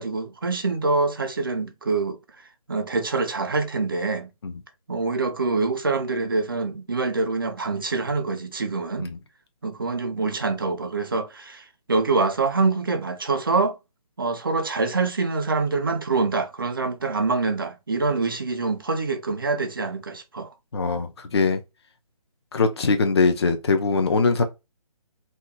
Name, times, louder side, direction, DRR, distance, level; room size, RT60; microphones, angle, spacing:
voice 1, 0.0-2.2 2.7-4.3 4.9-9.1 9.6-13.8 14.2-20.5 21.0-21.1, right 3 dB, 35° right, 0.4 m, -25 dB
voice 2, 20.7-21.6 22.5-24.4, left 4 dB, 45° left, 0.5 m, -21 dB
2.8 x 2.2 x 3.6 m
hypercardioid pair, 170°, 19 cm